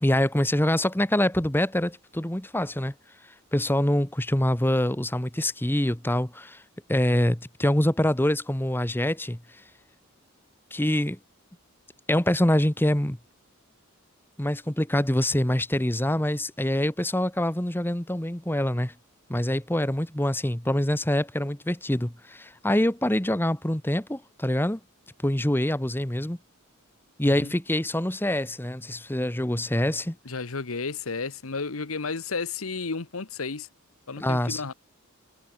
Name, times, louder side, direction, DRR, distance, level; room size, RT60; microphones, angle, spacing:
voice 1, 0.0-2.9 3.5-6.6 6.9-9.4 10.7-11.2 12.1-13.2 14.4-18.9 19.3-24.8 25.2-26.4 27.2-30.2 34.2-34.6, left 1 dB, 10° left, 1.2 m, -25 dB
voice 2, 30.2-33.7 34.1-34.7, left 4 dB, 85° left, 1.2 m, -32 dB
head